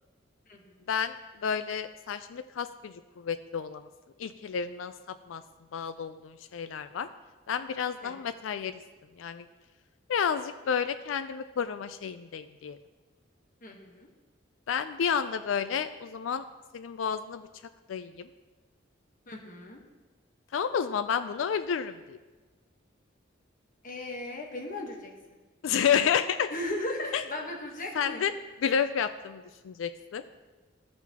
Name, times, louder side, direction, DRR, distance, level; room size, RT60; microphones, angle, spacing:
voice 1, 0.5-0.9 8.0-8.1 13.6-14.1 19.3-19.8 23.8-25.1 26.5-28.2, left 1 dB, 45° left, 0 dB, 1.2 m, -37 dB
voice 2, 1.4-3.9 4.2-4.9 5.3-5.4 5.7-7.1 7.5-8.8 9.2-9.4 10.1-12.8 14.7-16.4 16.7-17.4 17.9-18.3 20.5-22.2 25.6-26.5 27.1-27.2 28.0-28.3 28.6-30.2, left 7 dB, 85° left, 11 dB, 0.4 m, -30 dB
14.0 x 6.0 x 2.9 m, 1.3 s
head